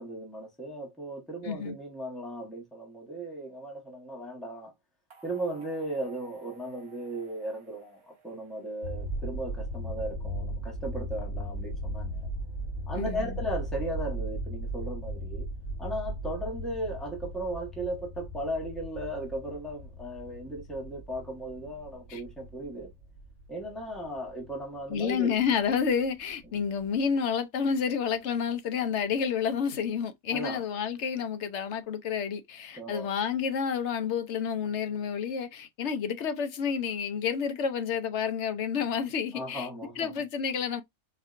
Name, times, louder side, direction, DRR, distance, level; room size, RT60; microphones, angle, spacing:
voice 1, 0.0-4.7 5.2-12.3 12.9-15.5 15.8-22.9 23.5-25.4 30.3-30.6 32.7-33.1 39.3-40.1, right 1 dB, ahead, 1.0 m, -36 dB
voice 2, 1.4-1.8 12.9-13.4 22.1-22.2 24.9-39.7 40.0-40.8, left 7 dB, 65° left, 0.8 m, -30 dB
sound 1, 5.1-9.3, right 3 dB, 50° right, 1.1 m, -57 dB
sound 2, 8.8-24.8 25.1-25.2 25.5-25.6 25.8-26.1 26.3-26.6 27.0-27.1, right 1 dB, 80° left, 2.6 m, -37 dB
4.3 x 2.7 x 2.4 m
omnidirectional pair, 1.4 m